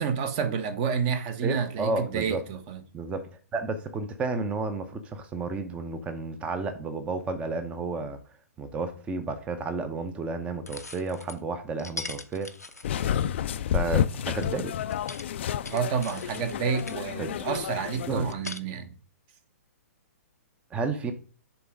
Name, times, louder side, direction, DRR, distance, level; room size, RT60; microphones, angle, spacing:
voice 1, 0.0-2.8 15.7-18.9, right 6 dB, 35° right, 1.0 m, -29 dB
voice 2, 1.4-2.4 2.9-8.2 8.6-12.5 13.5-14.7 17.2-17.3 18.1-18.3 20.7-21.1, right 3 dB, 15° right, 0.7 m, -32 dB
sound 1, 9.6-9.7 10.7-11.4 11.8-13.7 14.4-14.5 14.9-17.0 17.5-18.6, left 3 dB, 90° left, 0.6 m, -41 dB
sound 2, 12.8-18.3, left 10 dB, 50° left, 0.4 m, -30 dB
6.9 x 3.7 x 5.1 m
figure-of-eight pair, 120°, 8 cm